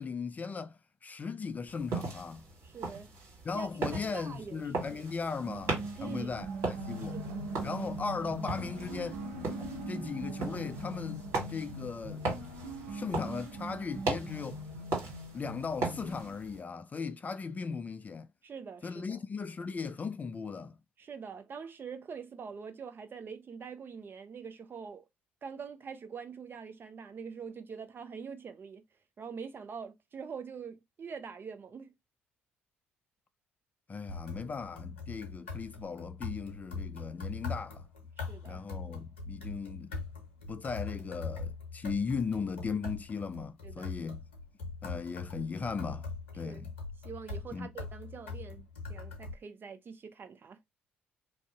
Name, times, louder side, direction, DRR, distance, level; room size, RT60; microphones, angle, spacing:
voice 1, 0.0-2.5 3.4-7.2 7.6-9.3 9.9-12.3 12.9-14.6 15.3-18.3 18.8-20.8 33.9-37.9 38.4-39.9 40.5-44.2 44.8-46.7 47.5-47.7, left 5 dB, 25° left, 0.3 m, -37 dB
sound 1, 1.7-16.6, right 3 dB, 55° right, 1.5 m, -39 dB
voice 2, 2.6-3.1 3.5-5.0 6.0-6.3 7.1-7.5 18.4-19.2 21.0-25.0 25.4-28.8 29.2-31.9 38.2-38.6 43.6-43.9 46.4-46.6 47.0-50.6, right 6 dB, 35° right, 0.5 m, -44 dB
sound 2, 5.4-16.3, right 1 dB, 70° right, 0.7 m, -41 dB
sound 3, 34.1-49.3, left 4 dB, 80° left, 0.7 m, -42 dB
2.5 x 2.0 x 3.6 m
figure-of-eight pair, 50°, 6 cm